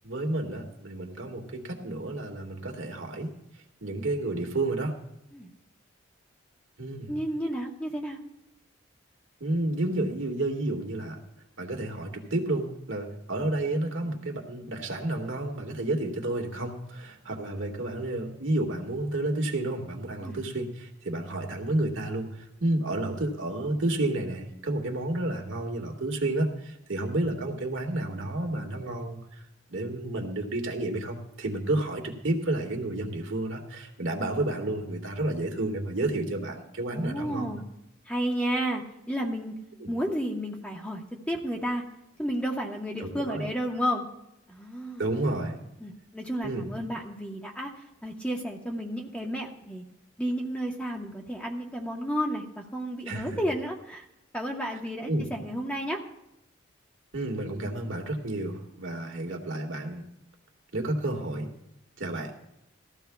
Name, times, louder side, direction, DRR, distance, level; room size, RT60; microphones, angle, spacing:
voice 1, 0.0-3.3 3.8-4.9 6.8-7.1 9.4-11.2 11.6-29.2 29.7-37.5 39.8-39.9 43.0-43.5 45.0-45.6 46.4-46.7 53.1-53.4 55.1-55.3 57.1-60.0 60.7-61.5 62.0-62.3, right 2 dB, 80° right, 3 dB, 1.8 m, -31 dB
voice 2, 7.1-8.2 20.2-20.4 36.9-37.6 38.1-39.5 39.9-41.8 42.2-44.1 44.5-45.1 45.8-49.8 50.2-54.0 54.3-56.0, equal, 5° left, 0 dB, 1.0 m, -32 dB
20.0 x 14.0 x 2.3 m, 0.82 s
head